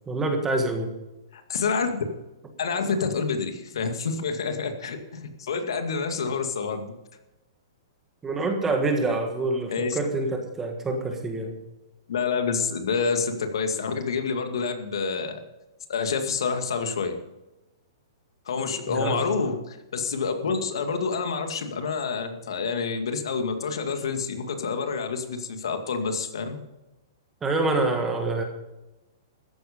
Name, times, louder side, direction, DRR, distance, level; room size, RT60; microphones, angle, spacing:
voice 1, 0.1-0.9 8.2-11.5 18.9-19.3 27.4-28.4, right 2 dB, 10° right, 4 dB, 1.6 m, -26 dB
voice 2, 1.3-2.0 2.6-6.9 9.7-10.0 12.1-15.4 15.9-17.2 18.5-26.6, left 5 dB, 80° left, 6 dB, 2.2 m, -28 dB
14.0 x 10.5 x 5.3 m, 0.99 s
hypercardioid pair, 170°, 2 cm